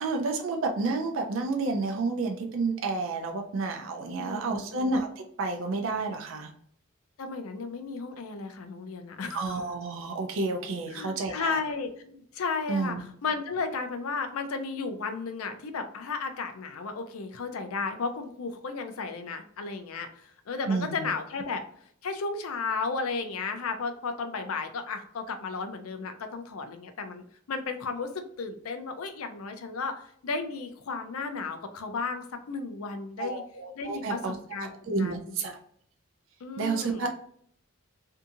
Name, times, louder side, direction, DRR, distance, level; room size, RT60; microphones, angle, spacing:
voice 1, 0.0-6.5 9.3-11.6 12.7-13.0 20.7-21.1 33.2-34.4 34.9-35.6 36.6-37.1, right 3 dB, 65° right, 3 dB, 0.4 m, -30 dB
voice 2, 4.2-4.9 7.2-9.6 10.9-21.6 22.0-33.4 33.8-35.4 36.4-37.0, left 4 dB, 85° left, 7 dB, 0.5 m, -34 dB
2.7 x 2.4 x 2.6 m, 0.63 s
head